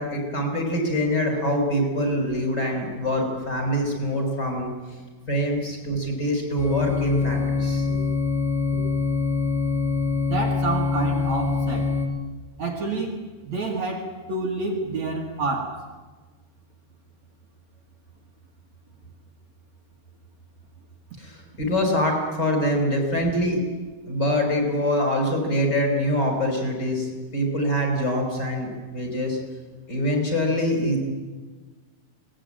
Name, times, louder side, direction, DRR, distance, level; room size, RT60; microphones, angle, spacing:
voice 1, 0.0-4.7 5.3-8.0 8.7-8.8 21.2-23.6 24.1-27.1 27.3-29.4 29.9-31.1, equal, 25° left, 2 dB, 5.4 m, -24 dB
sound 1, 6.6-12.1, left 4 dB, 75° left, 4.2 m, -24 dB
voice 2, 10.3-11.9 12.6-15.8, right 3 dB, 50° right, 0 dB, 2.8 m, -28 dB
22.5 x 19.5 x 9.0 m, 1.3 s
omnidirectional pair, 4.6 m